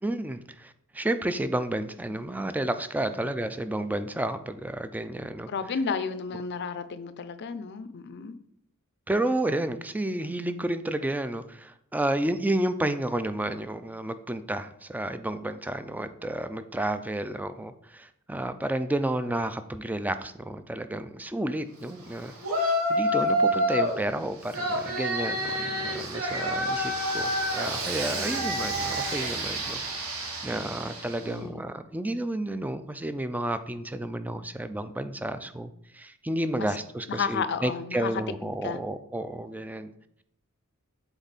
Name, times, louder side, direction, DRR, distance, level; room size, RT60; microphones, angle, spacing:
voice 1, 0.0-5.5 9.1-22.3 22.9-29.8 30.4-39.9, right 1 dB, 10° right, 11 dB, 0.3 m, -31 dB
voice 2, 5.5-8.4 31.2-31.6 36.6-36.7 37.1-38.1 38.6-38.8, left 5 dB, 55° left, 11 dB, 0.5 m, -32 dB
Yell, 22.4-24.0 24.5-31.3, equal, 70° right, 1.4 m, -28 dB
7.9 x 3.6 x 4.1 m, 0.70 s
head